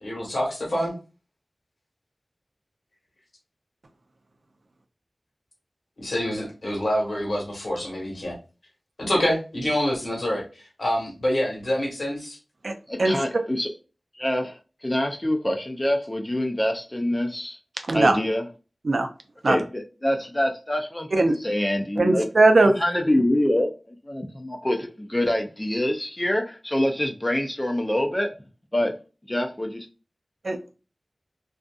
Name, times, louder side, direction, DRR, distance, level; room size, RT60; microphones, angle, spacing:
voice 1, 0.0-0.9 6.0-8.4 9.0-12.4, equal, 75° left, 1.2 m, -26 dB
voice 2, 12.9-13.7 14.2-17.6 17.9-18.4 19.4-22.3 22.8-28.3 28.7-28.9 29.3-29.9, left 1 dB, 25° left, 0.5 m, -25 dB
voice 3, 22.0-22.8 30.4-30.7, right 2 dB, 75° right, 0.5 m, -19 dB
2.6 x 2.4 x 2.3 m
wide cardioid pair, 45°, 0 cm